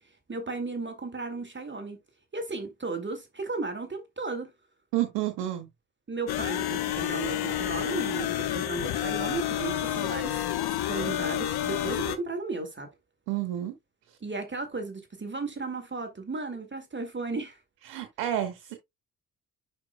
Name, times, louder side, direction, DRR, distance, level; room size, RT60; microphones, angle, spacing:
voice 1, 0.3-2.0 2.3-4.5 6.1-10.5 10.9-12.9 14.2-17.6, right 3 dB, 25° right, 1.9 m, -35 dB
voice 2, 4.9-5.7 13.3-13.7 17.9-18.7, right 13 dB, 70° right, 1.2 m, -30 dB
sound 1, 6.3-12.2, left 12 dB, 50° left, 1.1 m, -29 dB
11.0 x 4.5 x 2.2 m
figure-of-eight pair, 45°, 47 cm